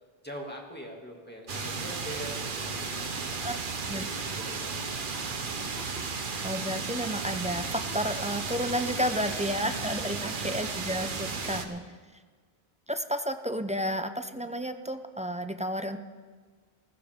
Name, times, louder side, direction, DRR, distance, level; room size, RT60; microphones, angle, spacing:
voice 1, 0.2-3.7 3.9-4.9 9.3-10.8 11.2-11.7, equal, 10° left, 0 dB, 2.2 m, -44 dB
sound 1, 1.5-11.6, right 4 dB, 55° right, 1.1 m, -34 dB
sound 2, 4.0-6.6 7.1-9.8, left 1 dB, 80° left, 2.5 m, -49 dB
voice 2, 6.4-11.8 12.9-16.0, equal, 10° right, 8 dB, 0.3 m, -31 dB
19.5 x 15.0 x 3.6 m, 1.5 s
omnidirectional pair, 1.0 m